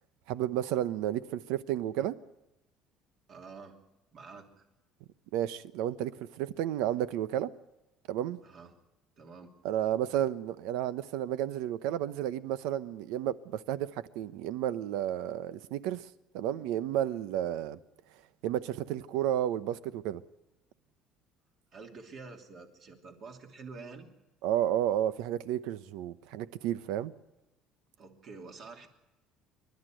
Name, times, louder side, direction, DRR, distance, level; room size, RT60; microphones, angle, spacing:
voice 1, 0.3-2.2 5.3-7.5 8.1-8.4 9.6-16.0 16.3-17.8 18.4-20.2 24.4-27.1, right 11 dB, 85° right, 0.9 m, -32 dB
voice 2, 3.3-3.8 4.1-4.7 8.4-8.8 9.2-9.5 21.7-24.1 28.0-28.9, right 4 dB, 40° right, 2.9 m, -48 dB
26.5 x 12.0 x 9.2 m
cardioid pair, 165°, 0 cm